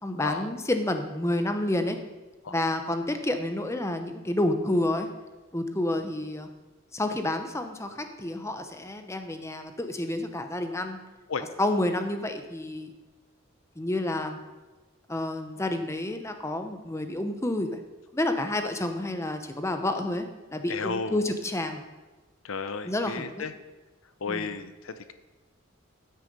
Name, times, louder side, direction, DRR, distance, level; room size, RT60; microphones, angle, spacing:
voice 1, 0.0-2.0 2.5-5.1 5.5-6.5 6.9-11.0 11.6-12.9 13.8-14.4 15.1-17.8 18.1-21.8 22.8-23.5 24.3-24.5, left 1 dB, 15° left, 7 dB, 0.8 m, -29 dB
voice 2, 20.7-21.2 22.4-23.5 24.2-25.1, left 4 dB, 80° left, 11 dB, 0.7 m, -33 dB
12.5 x 6.4 x 5.3 m, 1.2 s
head